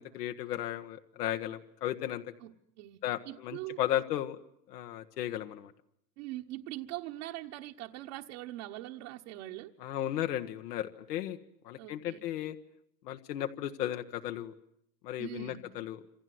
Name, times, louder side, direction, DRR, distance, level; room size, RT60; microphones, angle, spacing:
voice 1, 0.0-2.2 3.0-4.4 4.7-5.7 9.8-11.4 11.6-12.6 13.0-14.5 15.0-16.0, left 12 dB, 75° left, 6 dB, 1.6 m, -35 dB
voice 2, 2.4-3.8 6.2-9.7 11.8-12.3 15.2-15.6, right 15 dB, 50° right, 0 dB, 1.4 m, -42 dB
27.5 x 27.0 x 7.9 m, 0.75 s
supercardioid pair, 145°, 47 cm